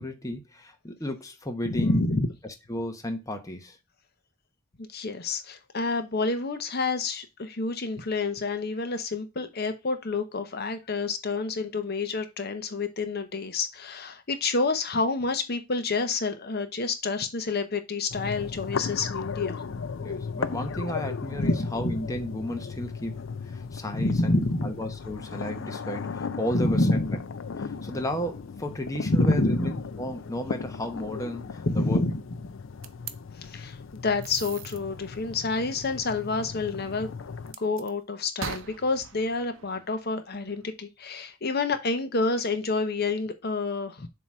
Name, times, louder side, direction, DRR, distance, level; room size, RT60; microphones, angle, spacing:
voice 1, 0.0-2.0 2.4-3.8 20.0-27.0 27.8-29.7 30.0-32.0, equal, 15° left, 0.9 m, -33 dB
voice 2, 1.7-2.3 4.8-19.6 21.4-21.9 23.9-24.8 26.5-27.2 29.1-29.8 31.6-32.2 33.4-37.1 37.6-44.1, left 3 dB, 50° left, 0.8 m, -28 dB
sound 1, 18.1-37.5, left 5 dB, 65° left, 0.5 m, -36 dB
sound 2, 32.8-33.2 34.2-34.8 37.5-37.9 38.4-40.6, right 6 dB, 75° right, 0.8 m, -41 dB
7.4 x 2.9 x 4.8 m
head